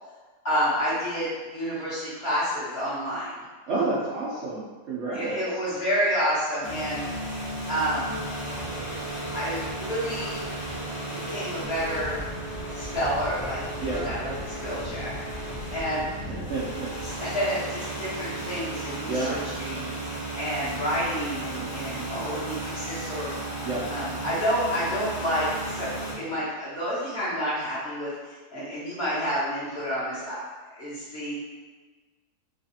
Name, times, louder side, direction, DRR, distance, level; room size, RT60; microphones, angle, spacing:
voice 1, 0.4-3.3 5.1-7.1 7.7-8.0 9.3-10.5 11.1-12.2 12.7-15.1 15.7-16.1 17.0-20.1 20.4-23.3 23.9-28.1 28.5-30.4 30.7-31.3, equal, 45° left, -10 dB, 1.1 m, -29 dB
voice 2, 3.7-5.3 13.8-14.1 16.3-16.7 19.1-19.4 23.6-23.8, right 2 dB, 65° right, -8 dB, 0.7 m, -29 dB
sound 1, 6.6-26.1, right 1 dB, 20° left, 0.6 m, -34 dB
3.2 x 2.4 x 2.7 m, 1.3 s
omnidirectional pair, 1.7 m